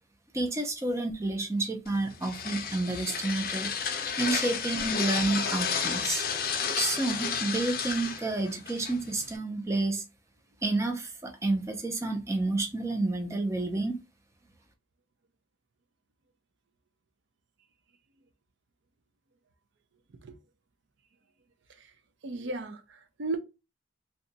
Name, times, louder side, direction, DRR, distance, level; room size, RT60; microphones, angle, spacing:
voice 1, 0.3-3.7 4.2-6.2 6.8-10.0 10.6-14.0, right 2 dB, 15° right, 0.5 m, -30 dB
sound 1, 1.9-9.4, left 6 dB, 50° left, 0.5 m, -32 dB
voice 2, 22.2-23.4, right 2 dB, 70° right, 0.5 m, -36 dB
2.7 x 2.3 x 3.8 m
head